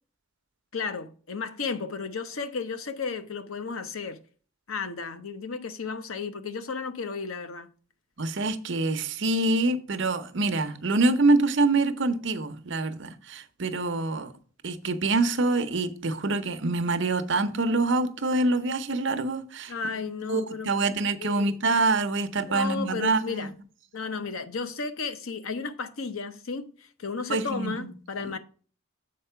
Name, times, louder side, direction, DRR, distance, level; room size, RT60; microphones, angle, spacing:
voice 1, 0.7-4.2 4.7-7.7 19.7-20.7 21.2-21.5 22.5-23.5 23.9-28.4, left 5 dB, 80° left, 0.8 m, -33 dB
voice 2, 8.2-14.3 14.6-19.7 20.3-23.5 27.3-27.9 28.2-28.3, right 2 dB, 60° right, 0.7 m, -25 dB
7.6 x 4.4 x 5.6 m
head